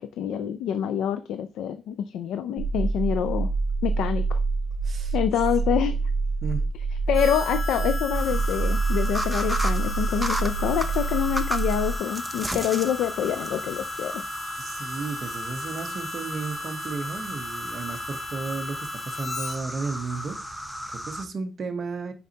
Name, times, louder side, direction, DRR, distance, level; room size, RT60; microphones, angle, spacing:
voice 1, 0.0-3.5 3.8-4.4 5.1-6.0 7.1-14.2, left 9 dB, 85° left, 0.4 m, -26 dB
sound 1, 2.6-11.9, right 3 dB, 90° right, 0.7 m, -26 dB
voice 2, 4.8-5.2 5.7-6.0 6.4-6.7 8.4-8.5 14.6-22.1, right 4 dB, 40° right, 0.9 m, -34 dB
Harmonica, 7.1-19.6, left 3 dB, 40° left, 1.5 m, -36 dB
sound 2, 8.1-21.2, equal, ahead, 0.7 m, -35 dB
6.7 x 5.2 x 2.8 m
cardioid pair, 140°, 0 cm